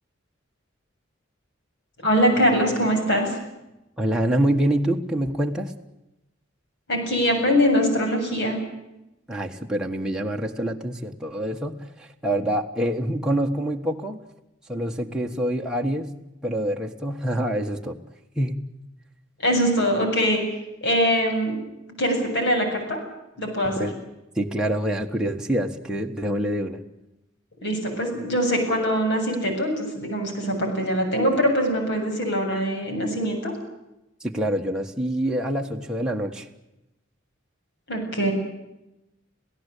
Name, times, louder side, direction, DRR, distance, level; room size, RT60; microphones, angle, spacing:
voice 1, 2.0-3.4 6.9-8.6 19.4-20.4 20.8-21.5 22.0-23.0 23.4-23.9 27.6-33.5 37.9-38.3, equal, 60° left, 3 dB, 7.5 m, -22 dB
voice 2, 4.0-5.7 9.3-14.2 14.7-16.1 16.4-18.0 18.4-18.6 23.7-23.9 24.3-26.8 34.2-36.5, right 1 dB, 5° right, 0 dB, 1.4 m, -26 dB
27.5 x 17.0 x 8.4 m, 0.92 s
head